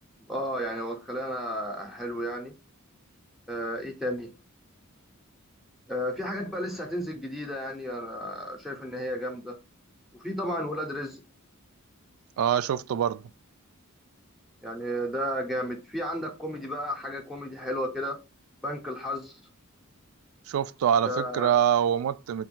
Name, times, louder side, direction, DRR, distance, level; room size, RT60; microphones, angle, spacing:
voice 1, 0.3-2.5 3.5-4.3 5.9-9.6 10.1-11.2 14.6-18.2 18.6-19.4 21.0-21.5, equal, ahead, 0.6 m, -33 dB
voice 2, 12.4-13.2 20.5-22.5, right 9 dB, 75° right, 0.3 m, -25 dB
3.4 x 2.2 x 4.3 m
head